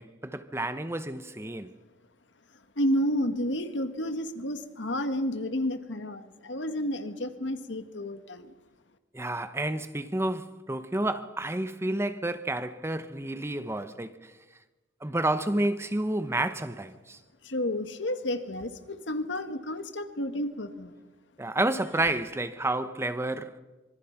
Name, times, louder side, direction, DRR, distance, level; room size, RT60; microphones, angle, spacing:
voice 1, 0.0-1.7 9.1-14.3 15.0-17.2 21.4-23.6, right 1 dB, 15° right, 0.9 m, -30 dB
voice 2, 2.8-8.5 17.4-20.9, left 1 dB, 75° left, 1.8 m, -31 dB
25.5 x 24.5 x 5.9 m
head